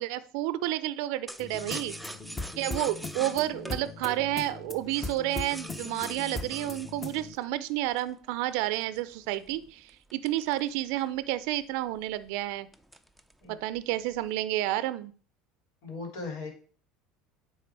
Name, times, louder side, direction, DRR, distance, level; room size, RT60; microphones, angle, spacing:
voice 1, 0.0-2.0 2.6-12.7 13.5-15.1, right 15 dB, 75° right, 15 dB, 0.5 m, -30 dB
sound 1, 1.3-8.2 8.7-11.2 11.6-11.7 12.0-12.3 12.7-13.4 13.8-14.3, right 1 dB, ahead, 0.5 m, -44 dB
sound 2, 1.4-7.4, left 3 dB, 20° left, 0.9 m, -39 dB
voice 2, 15.8-16.5, left 3 dB, 75° left, 2 dB, 2.9 m, -37 dB
9.2 x 3.6 x 4.6 m, 0.44 s
supercardioid pair, 120°, 0 cm